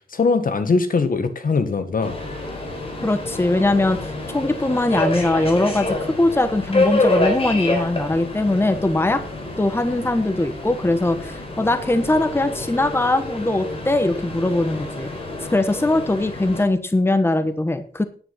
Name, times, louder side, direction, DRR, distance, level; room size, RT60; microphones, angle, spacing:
voice 1, 0.1-2.2, left 4 dB, 60° left, 10 dB, 1.7 m, -21 dB
Subway metro underground, 2.0-16.6, left 2 dB, 35° left, 4.7 m, -28 dB
voice 2, 3.0-9.2 9.6-15.1 15.5-18.0, left 2 dB, 15° left, 10 dB, 1.2 m, -21 dB
10.0 x 9.6 x 5.6 m, 0.41 s
wide cardioid pair, 95°, 16 cm